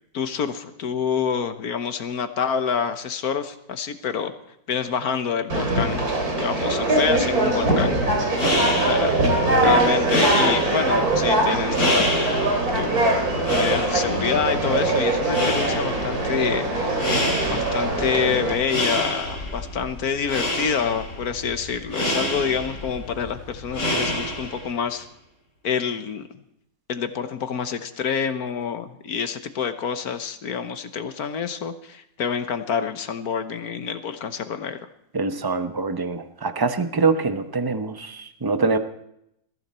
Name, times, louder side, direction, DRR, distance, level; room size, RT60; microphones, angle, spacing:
voice 1, 0.1-4.3 4.7-6.0 6.4-8.0 8.8-17.1 17.4-25.1 25.6-26.3 26.9-34.8, left 7 dB, 60° left, 9 dB, 1.5 m, -27 dB
Conversation, 5.5-18.5, right 2 dB, 55° right, 3.6 m, -22 dB
sound 1, 8.2-24.8, left 1 dB, 40° left, 5.2 m, -28 dB
voice 2, 9.6-10.2 35.1-38.8, right 4 dB, 20° right, 9 dB, 0.6 m, -24 dB
21.5 x 15.5 x 4.3 m, 0.78 s
omnidirectional pair, 1.9 m